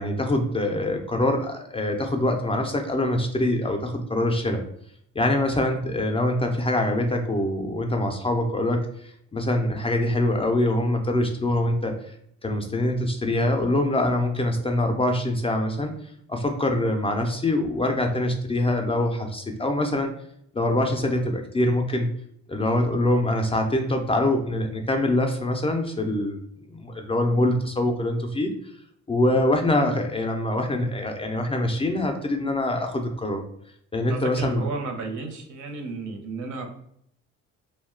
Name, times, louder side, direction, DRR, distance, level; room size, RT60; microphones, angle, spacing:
voice 1, 0.0-4.6 5.2-11.9 12.4-15.9 16.3-20.1 20.5-22.1 22.5-26.4 26.7-28.5 29.1-33.4 33.9-34.6, left 1 dB, 20° left, 4 dB, 0.3 m, -24 dB
voice 2, 34.1-36.7, right 3 dB, 75° right, 3 dB, 0.7 m, -33 dB
2.3 x 2.1 x 3.5 m, 0.70 s
cardioid pair, 90°, 30 cm